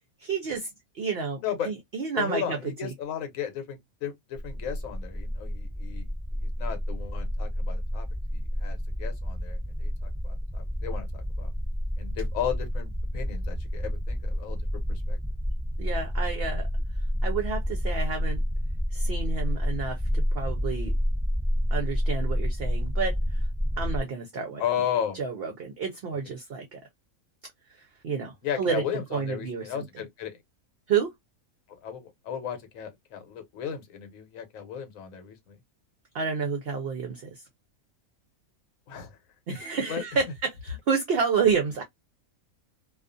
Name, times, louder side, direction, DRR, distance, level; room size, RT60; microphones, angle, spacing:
voice 1, 0.2-0.7 0.9-2.9 15.8-16.7 17.2-18.4 18.9-20.9 21.7-23.2 23.8-24.6 25.1-26.8 27.7-28.8 29.1-29.9 30.9-31.1 36.1-37.4 39.5-41.8, right 5 dB, 60° right, 0.6 m, -30 dB
voice 2, 2.2-6.1 6.4-8.1 8.3-11.5 12.0-14.6 14.9-15.2 24.6-25.2 28.4-30.4 31.8-35.6 38.9-39.1 39.5-39.6 39.9-40.0, left 8 dB, 70° left, 1.1 m, -34 dB
sound 1, 4.3-24.0, equal, 10° right, 0.4 m, -29 dB
2.3 x 2.3 x 2.4 m
omnidirectional pair, 1.5 m